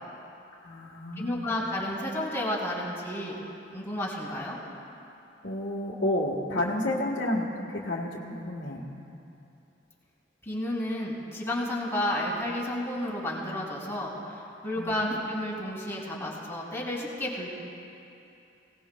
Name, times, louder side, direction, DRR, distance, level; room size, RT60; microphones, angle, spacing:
voice 1, 0.6-1.6 5.4-7.5 7.8-8.8 14.8-15.2, left 1 dB, 80° left, -5 dB, 1.5 m, -30 dB
voice 2, 1.2-3.4 3.7-4.6 10.4-17.5, left 1 dB, 15° left, -6 dB, 3.1 m, -31 dB
24.0 x 18.0 x 2.3 m, 2.8 s
head